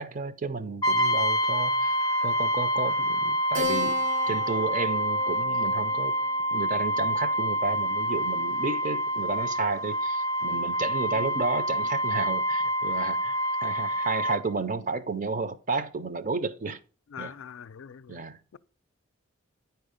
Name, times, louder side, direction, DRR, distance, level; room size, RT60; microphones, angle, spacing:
voice 1, 0.0-1.9 2.2-6.2 6.5-16.8 17.2-17.3 18.1-18.4, right 3 dB, 40° right, 0.5 m, -32 dB
Brass instrument, 0.8-14.4, right 1 dB, 15° left, 0.5 m, -27 dB
Keyboard (musical), 3.5-8.5, left 2 dB, 80° right, 0.9 m, -36 dB
voice 2, 17.1-18.2, left 7 dB, 80° left, 0.4 m, -43 dB
10.0 x 4.6 x 5.0 m
head